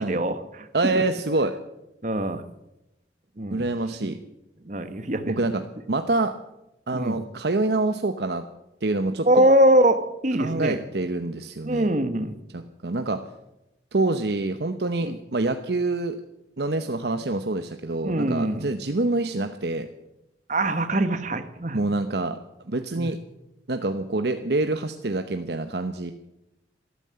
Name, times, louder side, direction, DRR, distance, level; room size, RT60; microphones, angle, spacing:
voice 1, 0.0-0.7 0.9-1.0 2.0-2.4 3.4-3.7 4.7-5.5 6.9-7.2 9.2-10.8 11.7-12.4 15.0-15.2 18.0-18.7 20.5-21.8 22.9-23.1, right 1 dB, 45° right, 10 dB, 1.2 m, -23 dB
voice 2, 0.7-1.5 3.5-4.2 5.3-5.6 5.9-6.3 6.9-8.4 8.8-9.3 10.4-11.9 12.5-13.2 13.9-16.2 16.6-19.9 21.7-22.4 22.7-23.2 23.7-26.1, right 2 dB, 65° right, 8 dB, 0.9 m, -26 dB
14.0 x 13.0 x 7.7 m, 0.90 s
head